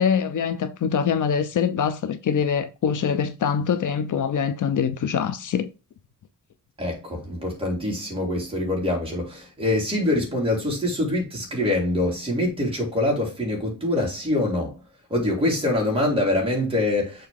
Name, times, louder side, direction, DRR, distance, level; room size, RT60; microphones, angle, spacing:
voice 1, 0.0-5.7, left 7 dB, 65° left, 0.8 m, -24 dB
voice 2, 6.8-14.8 15.1-17.3, left 1 dB, 15° right, 3.3 m, -24 dB
6.9 x 4.1 x 3.8 m
wide cardioid pair, 175°, 33 cm